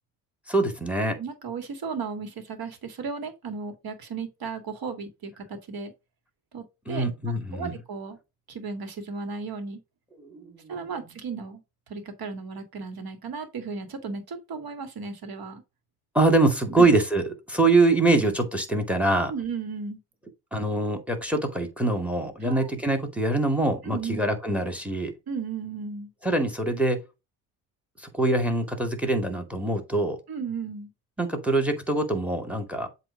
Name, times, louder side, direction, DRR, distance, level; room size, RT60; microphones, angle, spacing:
voice 1, 0.5-1.2 6.9-7.7 10.2-10.9 16.1-19.3 20.5-25.1 26.2-27.0 28.0-30.2 31.2-32.9, right 2 dB, 5° right, 2.2 m, -24 dB
voice 2, 1.1-5.9 6.5-7.1 7.5-8.2 8.5-9.8 10.7-11.6 11.9-15.6 16.7-16.9 19.3-20.0 22.4-22.7 23.8-24.2 25.3-26.1 30.3-30.9, right 5 dB, 50° right, 1.9 m, -35 dB
7.7 x 2.9 x 4.8 m
hypercardioid pair, 60°, 47 cm